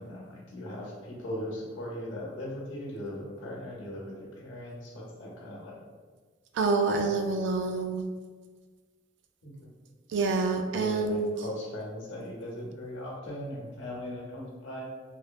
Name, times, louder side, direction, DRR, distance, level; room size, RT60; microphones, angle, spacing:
voice 1, 0.0-5.8 9.4-9.5 10.7-14.9, left 1 dB, 90° left, -3 dB, 0.8 m, -39 dB
voice 2, 6.5-8.0 10.1-11.3, right 3 dB, 65° right, 5 dB, 0.3 m, -27 dB
3.0 x 2.0 x 2.3 m, 1.5 s
head